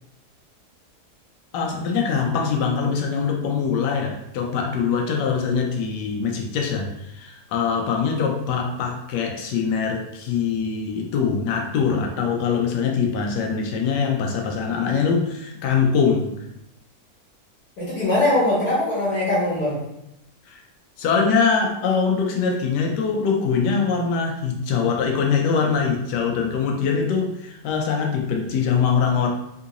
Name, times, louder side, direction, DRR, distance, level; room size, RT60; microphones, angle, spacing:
voice 1, 1.5-16.4 20.5-20.6 21.0-29.3, left 6 dB, 85° left, 2 dB, 1.2 m, -23 dB
voice 2, 17.8-19.8, left 1 dB, 65° left, -8 dB, 1.5 m, -21 dB
3.7 x 2.4 x 2.8 m, 0.84 s
omnidirectional pair, 1.8 m